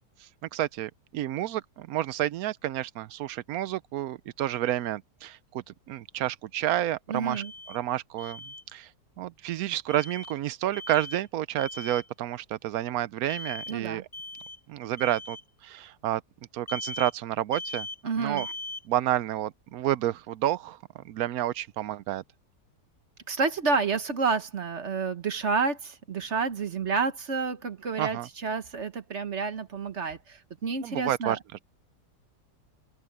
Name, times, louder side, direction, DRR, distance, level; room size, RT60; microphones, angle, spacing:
voice 1, 0.5-8.4 8.7-8.9 9.2-14.1 14.7-15.4 15.6-16.2 16.5-17.9 18.2-18.5 18.9-22.2 28.0-28.3 30.8-31.6, right 13 dB, 70° right, 0.9 m, -30 dB
voice 2, 7.1-7.5 13.7-14.0 18.0-18.5 23.3-31.4, right 4 dB, 45° right, 1.3 m, -29 dB
Alarm, 7.3-7.8 8.2-8.6 9.9-10.3 10.7-11.2 11.6-12.1 13.3-13.8 14.1-14.6 15.0-15.4 16.7-17.2 17.5-18.0 18.4-18.8, left 2 dB, 20° left, 1.0 m, -40 dB
open air
omnidirectional pair, 1.9 m